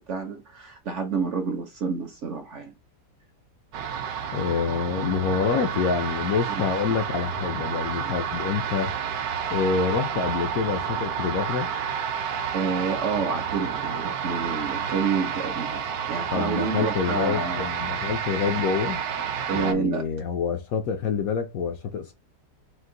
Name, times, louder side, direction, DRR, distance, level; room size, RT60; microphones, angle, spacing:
voice 1, 0.0-2.7 6.5-6.6 8.0-8.1 12.5-17.7 19.5-20.0, right 5 dB, 55° right, 0.9 m, -29 dB
sound 1, 3.7-19.7, right 7 dB, 85° right, 1.2 m, -30 dB
voice 2, 4.3-8.9 9.5-11.7 16.3-19.0 19.5-22.1, left 6 dB, 65° left, 1.0 m, -27 dB
4.5 x 2.5 x 3.8 m
omnidirectional pair, 1.9 m